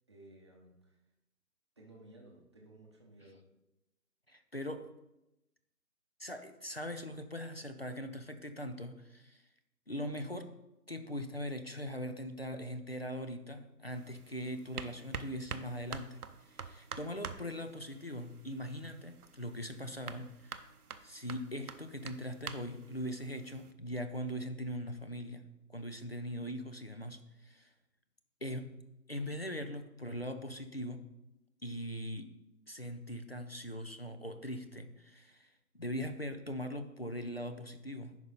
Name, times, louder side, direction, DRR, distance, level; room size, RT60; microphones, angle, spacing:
voice 1, 0.1-1.0 1.8-3.4, right 1 dB, 15° right, -2 dB, 0.8 m, -57 dB
voice 2, 4.3-4.9 6.2-9.4 9.9-10.5 10.9-20.6 21.0-27.7 28.4-28.7 29.1-31.1 31.6-32.3 32.7-38.2, equal, 40° left, 8 dB, 0.5 m, -41 dB
sound 1, 13.9-23.7, right 6 dB, 65° right, 0.8 m, -48 dB
10.5 x 5.4 x 3.9 m, 0.93 s
figure-of-eight pair, 155°, 49 cm